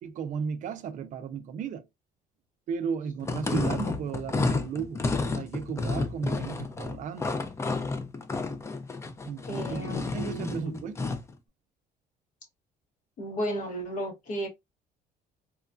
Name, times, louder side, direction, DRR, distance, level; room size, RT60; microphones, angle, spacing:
voice 1, 0.0-1.9 2.7-5.0 5.3-7.4 9.3-11.0, right 6 dB, 55° right, 0.5 m, -35 dB
sound 1, 3.2-11.3, left 3 dB, 20° left, 0.4 m, -31 dB
voice 2, 9.5-10.8 13.2-14.5, equal, 55° left, 1.1 m, -34 dB
3.0 x 2.3 x 2.4 m
cardioid pair, 120°, 16 cm